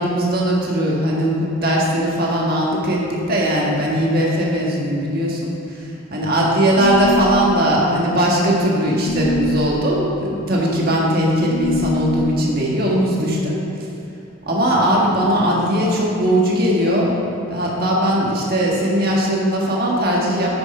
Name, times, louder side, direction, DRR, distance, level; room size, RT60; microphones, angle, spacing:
voice 1, 0.0-13.9 14.5-17.2 17.5-20.6, equal, 45° right, -3 dB, 1.6 m, -19 dB
sound 1, 6.7-7.4 9.0-9.6 11.5-12.2, left 2 dB, 90° left, 1.4 m, -24 dB
8.9 x 6.4 x 5.5 m, 2.6 s
head